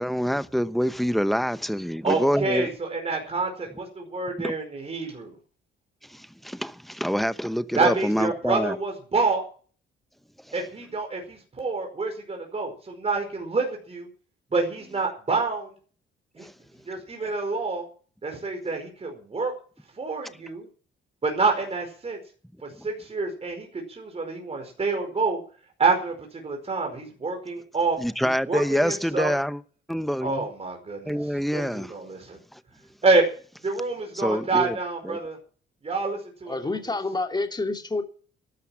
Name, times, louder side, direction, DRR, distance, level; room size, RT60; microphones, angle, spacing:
voice 1, 0.0-2.7 4.4-4.5 6.1-8.7 16.4-16.5 28.0-29.6 29.9-30.5 31.0-31.9 34.2-34.8 35.0-35.2, equal, ahead, 1.0 m, -26 dB
voice 2, 2.0-5.3 7.7-9.4 10.5-14.1 14.5-15.7 16.3-16.5 16.9-17.9 18.2-19.5 20.0-20.7 21.2-22.2 22.6-25.4 25.8-28.0 28.5-29.3 30.2-31.2 31.5-32.4 33.0-33.2 33.6-35.4 35.8-36.8, right 3 dB, 30° right, 4.9 m, -27 dB
voice 3, 36.5-38.0, left 3 dB, 20° left, 2.9 m, -28 dB
12.5 x 12.5 x 7.2 m
cardioid pair, 90°, 20 cm